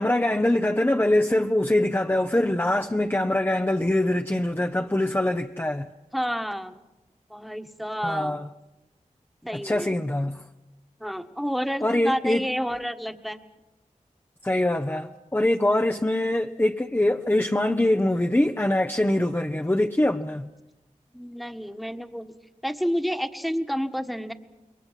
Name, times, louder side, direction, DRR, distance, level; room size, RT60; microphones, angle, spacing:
voice 1, 0.0-5.9 8.0-8.5 9.5-10.4 11.8-12.4 14.4-20.5, left 1 dB, 15° left, 0.9 m, -23 dB
voice 2, 6.1-6.7 7.3-8.4 9.4-9.9 11.0-13.4 21.1-22.3 22.6-24.3, equal, ahead, 1.6 m, -29 dB
28.0 x 22.0 x 5.9 m
cardioid pair, 40°, 14 cm